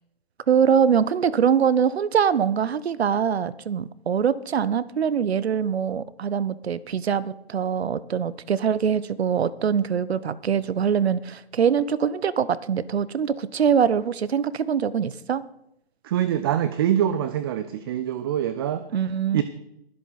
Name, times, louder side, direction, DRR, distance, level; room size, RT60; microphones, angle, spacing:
voice 1, 0.5-15.4 18.9-19.4, right 7 dB, 80° right, 19 dB, 0.8 m, -23 dB
voice 2, 16.0-18.9 19.3-19.4, right 10 dB, 25° right, 12 dB, 0.4 m, -24 dB
21.5 x 7.8 x 4.0 m, 0.82 s
hypercardioid pair, 135°, 31 cm